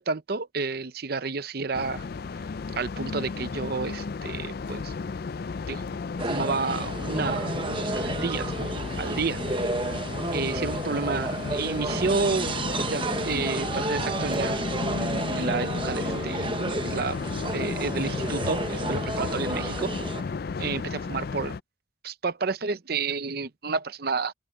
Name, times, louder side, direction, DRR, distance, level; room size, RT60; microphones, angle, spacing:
voice 1, 0.0-2.1 2.8-4.9 5.7-5.9 6.3-8.7 9.0-9.4 10.3-12.5 12.8-14.6 15.4-16.5 16.8-17.2 17.5-19.9 20.6-21.6 22.0-24.3, right 4 dB, 50° right, 0.7 m, -30 dB
sound 1, 1.7-21.6, left 4 dB, 50° left, 0.4 m, -33 dB
sound 2, 6.2-20.2, right 2 dB, 25° right, 0.9 m, -31 dB
open air
head